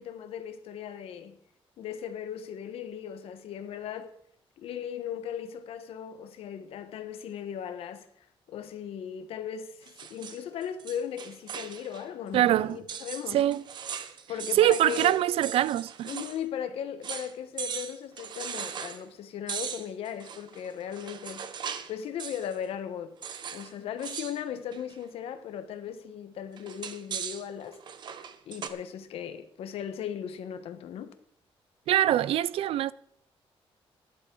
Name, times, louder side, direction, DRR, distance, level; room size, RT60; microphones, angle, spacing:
voice 1, 0.0-1.4 1.8-4.1 4.6-8.1 8.5-13.4 14.3-15.2 16.0-21.5 21.9-23.2 23.5-27.8 28.5-31.1, left 9 dB, 80° left, 1.1 m, -37 dB
sound 1, 9.8-12.1 12.3-12.4 12.9-16.4 16.7-16.8 17.0-17.3 17.6-19.0 19.5-21.9 22.2-22.6 23.2-23.7 24.0-24.4 24.7-25.0 26.6-28.7, right 7 dB, 50° right, 0.9 m, -39 dB
voice 2, 12.3-12.8 13.3-13.6 14.5-16.2 31.9-32.9, right 12 dB, 80° right, 0.4 m, -24 dB
14.5 x 11.0 x 3.8 m
cardioid pair, 165°, 10 cm